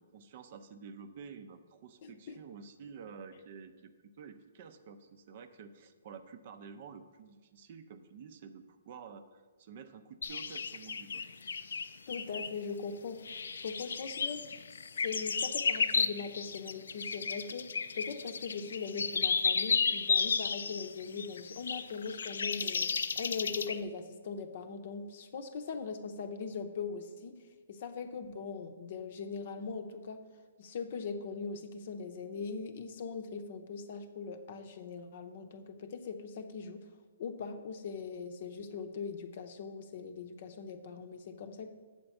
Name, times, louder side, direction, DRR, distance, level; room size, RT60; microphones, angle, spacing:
voice 1, 0.0-11.2, right 6 dB, 40° right, 9 dB, 0.5 m, -50 dB
voice 2, 2.0-2.4 12.1-13.3 13.6-14.5 15.0-17.7 17.9-22.9 23.2-27.4 27.7-30.2 30.6-36.8 37.2-41.7, left 5 dB, 45° left, 8 dB, 0.7 m, -40 dB
sound 1, 10.2-12.6 13.3-23.8, left 5 dB, 80° left, 0.4 m, -33 dB
7.7 x 4.4 x 7.0 m, 1.4 s
hypercardioid pair, 160°, 0 cm